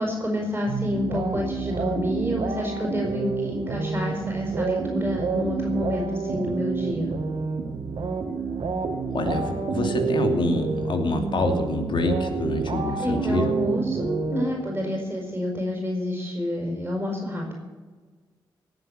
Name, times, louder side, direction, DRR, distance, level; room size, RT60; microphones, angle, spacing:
voice 1, 0.0-7.2 12.9-17.5, left 1 dB, 20° right, 0 dB, 5.9 m, -28 dB
sound 1, 0.7-15.0, right 5 dB, 70° right, 2.3 m, -29 dB
voice 2, 9.0-13.5, left 2 dB, 65° left, 5 dB, 2.7 m, -26 dB
17.5 x 7.8 x 9.1 m, 1.4 s
cardioid pair, 55°, 9 cm